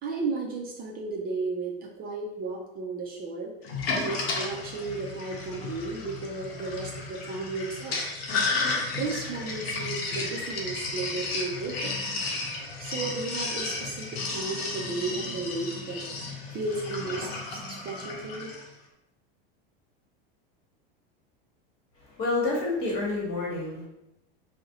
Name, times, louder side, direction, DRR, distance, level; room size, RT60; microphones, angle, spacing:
voice 1, 0.0-3.5 3.9-8.0 9.0-11.9 12.8-16.0 16.5-18.5, right 3 dB, 30° right, 0 dB, 0.4 m, -34 dB
Sink (filling or washing), 3.6-18.7, left 3 dB, 90° left, 0.6 m, -33 dB
voice 2, 22.0-23.9, left 3 dB, 50° left, -3 dB, 1.1 m, -29 dB
2.4 x 2.0 x 2.7 m, 0.88 s
supercardioid pair, 105°, 30 cm